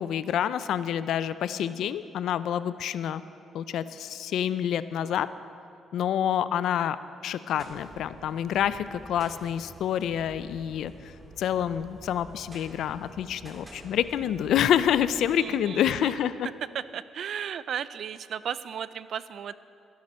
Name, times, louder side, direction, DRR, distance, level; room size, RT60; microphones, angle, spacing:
voice 1, 0.0-3.2 3.5-5.3 5.9-7.0 7.2-11.1 11.4-16.5, left 10 dB, 75° left, 15 dB, 0.4 m, -27 dB
sound 1, 7.6-15.4, right 1 dB, 15° right, 2.0 m, -49 dB
voice 2, 15.4-16.1 16.7-19.5, right 8 dB, 65° right, 16 dB, 0.3 m, -35 dB
13.0 x 10.5 x 4.2 m, 2.5 s
cardioid pair, 90°, 0 cm